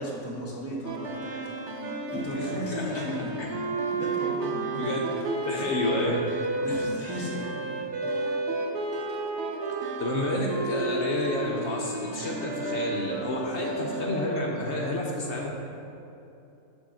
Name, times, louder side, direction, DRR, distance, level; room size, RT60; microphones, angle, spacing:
voice 1, 0.0-1.6 2.1-3.3 3.9-5.0 6.6-7.9, right 1 dB, 15° right, -5 dB, 0.6 m, -36 dB
sound 1, 0.8-15.4, right 2 dB, 60° right, 0.8 m, -37 dB
Wind instrument woodwind instrument, 0.9-14.3, right 2 dB, 85° right, 1.3 m, -33 dB
voice 2, 2.4-3.0 3.4-3.5 4.8-5.0 5.4-6.1 6.7-6.8 10.0-15.5, left 1 dB, 55° left, -2 dB, 0.9 m, -30 dB
6.5 x 3.8 x 6.2 m, 2.8 s
omnidirectional pair, 1.6 m